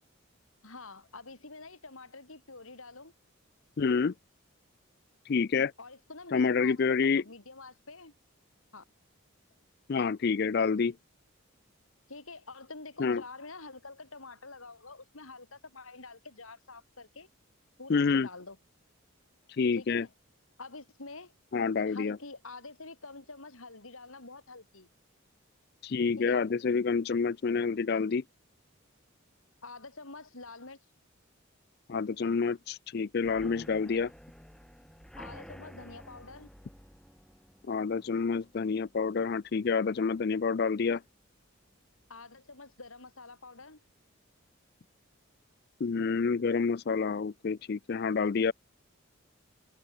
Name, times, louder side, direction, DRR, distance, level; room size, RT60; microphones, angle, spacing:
voice 1, 0.6-3.1 5.8-8.1 8.7-8.8 12.1-17.3 17.8-18.6 19.8-20.1 20.6-21.3 21.9-24.9 26.2-26.5 29.6-30.8 35.2-36.5 42.1-43.8, left 3 dB, 75° left, 3.7 m, -47 dB
voice 2, 3.8-4.1 5.3-5.7 6.3-7.2 9.9-10.9 13.0-13.2 17.9-18.3 19.6-20.1 21.5-22.2 25.8-28.2 31.9-34.1 37.7-41.0 45.8-48.5, left 5 dB, 50° left, 0.4 m, -28 dB
sound 1, 33.2-40.8 41.2-41.6 41.9-42.0 42.3-42.4, equal, 5° left, 2.8 m, -52 dB
head